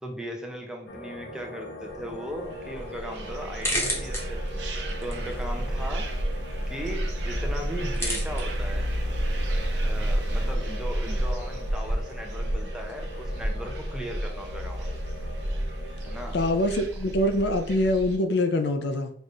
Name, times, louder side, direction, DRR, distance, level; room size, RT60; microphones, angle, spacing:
voice 1, 0.0-4.4 5.0-6.1 6.7-8.9 9.8-15.0 16.1-16.4, equal, 5° right, 1 dB, 0.6 m, -38 dB
sound 1, 0.9-16.7, left 1 dB, 85° left, 1.0 m, -42 dB
sound 2, 1.8-13.0, left 1 dB, 15° left, 1.0 m, -38 dB
sound 3, 2.5-18.2, right 1 dB, 75° right, 0.8 m, -30 dB
voice 2, 16.3-19.1, left 1 dB, 65° left, 7 dB, 0.5 m, -24 dB
5.3 x 2.6 x 3.2 m, 0.64 s
head